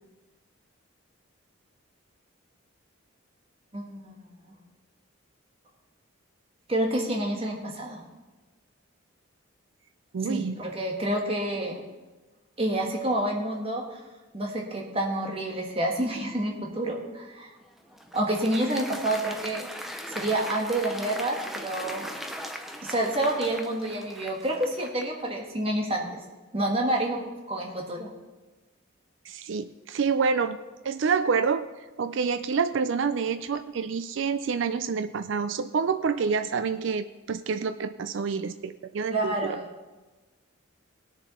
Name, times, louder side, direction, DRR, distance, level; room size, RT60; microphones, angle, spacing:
voice 1, 3.7-4.3 6.7-8.0 10.2-11.8 12.6-14.0 14.3-17.5 18.1-19.7 20.1-22.2 22.8-26.1 26.5-27.2 27.5-28.1 39.1-39.7, right 1 dB, 30° right, 0 dB, 1.6 m, -28 dB
voice 2, 10.1-10.6 29.2-30.6 30.8-31.7 32.0-39.6, right 5 dB, 65° right, 11 dB, 0.4 m, -27 dB
Applause, 17.6-25.2, equal, ahead, 0.6 m, -39 dB
19.0 x 6.9 x 4.2 m, 1.2 s
head